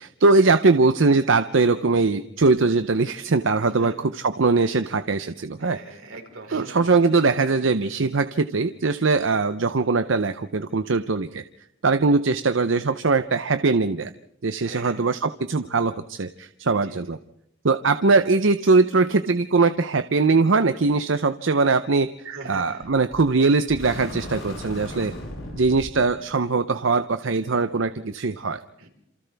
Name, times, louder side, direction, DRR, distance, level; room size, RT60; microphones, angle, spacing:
voice 1, 0.2-5.8 6.5-11.4 11.8-14.1 14.4-17.2 17.6-22.1 22.4-25.1 25.5-28.6, right 3 dB, 65° right, 10 dB, 0.7 m, -21 dB
voice 2, 5.6-6.8 14.6-15.0 16.8-17.0 22.2-22.8 28.8-28.9, right 3 dB, 85° right, 2 dB, 4.4 m, -40 dB
sound 1, 22.8-23.3 23.7-26.0, left 1 dB, 70° left, 7.9 m, -36 dB
28.5 x 27.5 x 3.5 m, 0.78 s
head